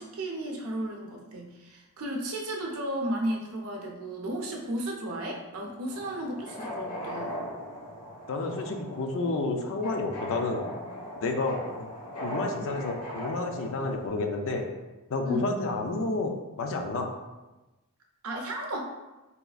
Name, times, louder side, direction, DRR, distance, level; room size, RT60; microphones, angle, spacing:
voice 1, 0.0-7.3 15.2-15.5 18.2-18.8, right 1 dB, 65° right, 0 dB, 0.6 m, -34 dB
sound 1, 5.9-14.1, equal, 85° left, 1.0 m, -39 dB
voice 2, 8.3-10.7 11.2-11.9 12.2-14.7 15.1-17.1, left 3 dB, 60° left, 4 dB, 0.4 m, -30 dB
4.1 x 2.4 x 2.3 m, 1.1 s
head